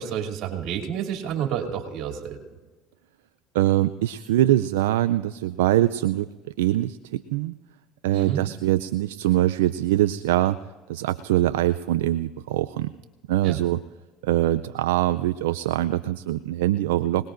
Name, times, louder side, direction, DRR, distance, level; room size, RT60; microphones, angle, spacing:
voice 1, 0.0-2.4 8.1-8.4 13.4-13.6, right 9 dB, 65° right, 2 dB, 2.7 m, -29 dB
voice 2, 3.5-6.3 6.6-7.5 8.0-10.6 10.9-12.9 13.3-13.8 14.2-17.3, right 14 dB, 85° right, 12 dB, 0.4 m, -23 dB
26.0 x 19.5 x 2.6 m, 1.3 s
supercardioid pair, 85°, 0 cm